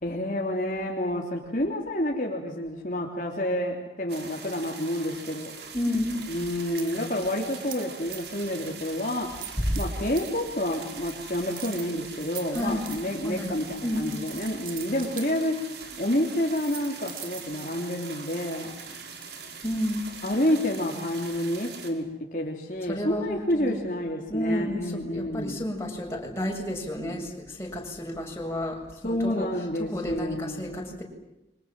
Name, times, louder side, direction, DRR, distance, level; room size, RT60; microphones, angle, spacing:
voice 1, 0.0-5.5 6.3-9.4 9.8-15.6 16.0-18.8 20.2-25.6 29.0-30.8, left 1 dB, 45° left, 0 dB, 3.4 m, -29 dB
sound 1, 4.1-21.9, right 5 dB, 65° right, 5.2 m, -42 dB
voice 2, 5.7-6.2 9.6-9.7 12.5-12.9 13.2-14.1 19.6-20.1 22.9-23.8 24.3-29.5 29.8-31.0, left 1 dB, 15° left, 0 dB, 7.4 m, -31 dB
sound 2, 6.5-6.9 7.7-7.9 8.1-8.5 8.8-9.0 9.4-9.9 10.2-10.3 10.7-11.1 11.5-15.3 16.0-16.1 16.4-19.4, right 10 dB, 50° right, 2.9 m, -42 dB
30.0 x 25.5 x 7.7 m, 0.96 s
head